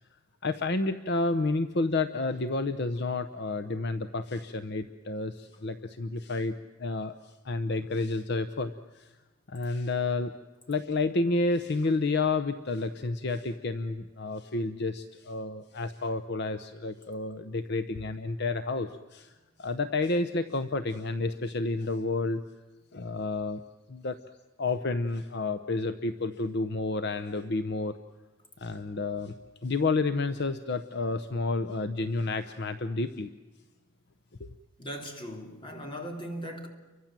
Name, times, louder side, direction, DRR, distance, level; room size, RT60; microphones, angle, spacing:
voice 1, 0.4-9.2 9.5-10.3 10.7-19.3 19.6-22.4 22.9-23.6 23.9-24.2 24.6-28.0 28.6-29.3 29.6-33.3 34.4-34.5, left 3 dB, 55° left, 0.8 m, -30 dB
voice 2, 34.8-36.7, equal, 25° left, 3.0 m, -38 dB
30.0 x 24.5 x 7.5 m
head